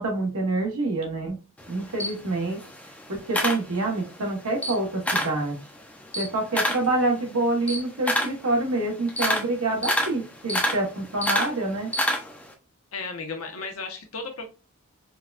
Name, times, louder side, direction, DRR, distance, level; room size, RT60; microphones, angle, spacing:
voice 1, 0.0-1.4 1.7-2.6 3.1-5.6 6.2-11.9, right 2 dB, 85° right, 1.2 m, -26 dB
Camera, 1.6-4.2 4.5-5.4 5.8-12.5, equal, 5° left, 0.4 m, -28 dB
voice 2, 12.9-14.4, left 4 dB, 75° left, 0.8 m, -34 dB
4.6 x 2.2 x 2.4 m
head